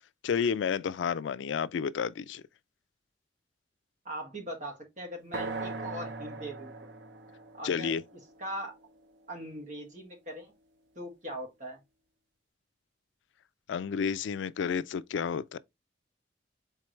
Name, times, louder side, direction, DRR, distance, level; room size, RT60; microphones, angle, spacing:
voice 1, 0.2-2.4 7.6-8.0 13.7-15.6, left 6 dB, 85° left, 0.3 m, -31 dB
voice 2, 4.1-6.7 7.5-7.9 8.4-8.7 9.3-10.5 11.0-11.8, right 1 dB, 45° right, 1.7 m, -40 dB
sound 1, 5.3-9.3, right 3 dB, 75° right, 0.7 m, -40 dB
4.6 x 3.7 x 3.1 m
head